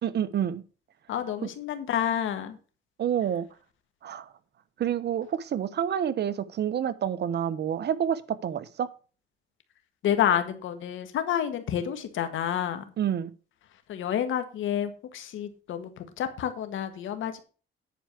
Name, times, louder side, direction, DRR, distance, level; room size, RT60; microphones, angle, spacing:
voice 1, 0.0-0.6 3.0-3.5 4.0-4.3 4.8-8.9 13.0-13.3, right 9 dB, 55° right, 0.9 m, -28 dB
voice 2, 1.1-2.6 10.0-12.8 13.9-17.4, left 9 dB, 75° left, 1.6 m, -29 dB
10.0 x 4.8 x 6.7 m
cardioid pair, 90°, 20 cm